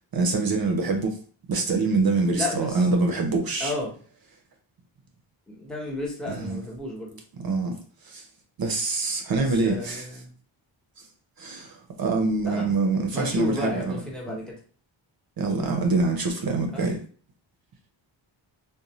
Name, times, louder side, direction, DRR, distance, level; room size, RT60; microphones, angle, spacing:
voice 1, 0.1-1.2 1.5-3.7 6.3-6.6 7.4-7.8 8.0-8.2 8.6-10.1 11.4-13.9 15.4-17.0, right 3 dB, 50° right, 0.6 m, -25 dB
voice 2, 2.3-2.9 3.6-3.9 5.5-7.2 9.4-10.3 12.5-12.7 13.1-14.6 16.7-17.0, left 2 dB, ahead, 1.0 m, -32 dB
2.5 x 2.1 x 3.0 m
cardioid pair, 70°, 49 cm